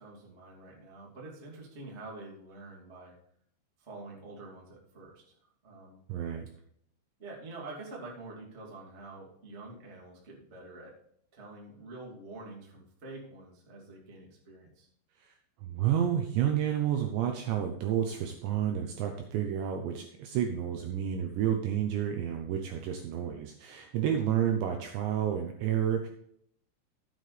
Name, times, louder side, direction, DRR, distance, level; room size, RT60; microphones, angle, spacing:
voice 1, 0.0-3.1 3.8-5.3 5.6-6.0 7.2-10.9 11.3-14.9 24.0-24.5, right 2 dB, 30° right, -3 dB, 1.3 m, -47 dB
voice 2, 6.1-6.5 15.2-15.3 15.6-26.1, right 9 dB, 80° right, 4 dB, 2.7 m, -30 dB
13.5 x 8.5 x 3.3 m, 0.68 s
omnidirectional pair, 6.0 m